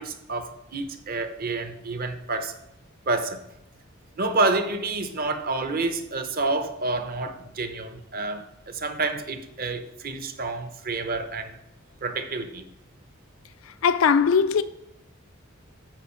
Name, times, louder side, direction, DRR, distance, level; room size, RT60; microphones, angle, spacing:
voice 1, 0.0-2.5 3.1-3.4 4.2-11.6 12.0-12.7, right 3 dB, 45° right, 0.8 m, -29 dB
voice 2, 13.8-14.6, left 6 dB, 70° left, 0.4 m, -19 dB
9.1 x 4.4 x 4.5 m
head